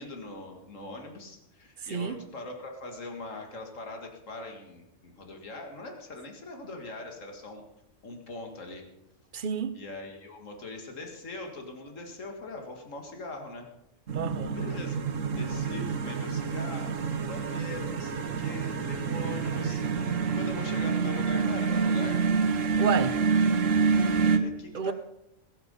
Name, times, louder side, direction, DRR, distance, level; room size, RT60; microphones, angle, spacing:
voice 1, 0.0-7.6 8.0-8.8 9.7-13.7 14.5-15.0 15.3-22.3 24.1-24.9, left 2 dB, 85° left, 2.3 m, -41 dB
voice 2, 1.8-2.2 9.3-9.8 14.1-14.6 22.8-23.2 24.7-24.9, right 7 dB, 45° right, 0.8 m, -30 dB
sound 1, 14.1-24.4, right 5 dB, 90° right, 1.5 m, -27 dB
21.0 x 8.9 x 5.4 m
omnidirectional pair, 1.3 m